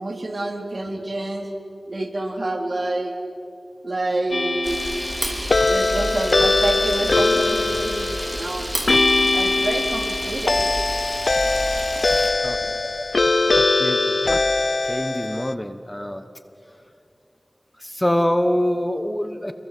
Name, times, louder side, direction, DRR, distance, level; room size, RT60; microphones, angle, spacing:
voice 1, 0.0-1.5 1.9-3.1 3.8-4.8 5.6-8.7 9.3-10.6, right 2 dB, 50° right, 2 dB, 3.7 m, -27 dB
sound 1, 4.3-15.5, left 3 dB, 60° left, 0.7 m, -21 dB
Camera, 4.6-12.3, right 1 dB, 20° right, 4.2 m, -30 dB
voice 2, 14.9-16.2 17.8-19.5, equal, 10° left, 9 dB, 1.2 m, -24 dB
29.5 x 22.5 x 7.7 m, 2.6 s
wide cardioid pair, 60°, 0 cm